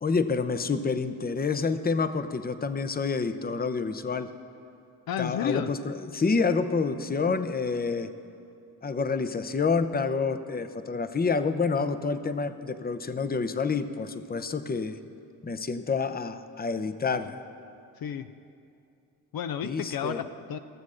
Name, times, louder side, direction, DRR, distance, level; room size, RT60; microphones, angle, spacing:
voice 1, 0.0-4.3 5.2-8.1 8.8-15.0 15.4-17.4 19.6-20.2, left 4 dB, 25° left, 11 dB, 0.7 m, -28 dB
voice 2, 5.1-5.7 7.3-7.4 18.0-18.4 19.3-20.6, left 9 dB, 60° left, 9 dB, 0.5 m, -32 dB
16.0 x 7.1 x 6.4 m, 2.6 s
supercardioid pair, 50°, 40 cm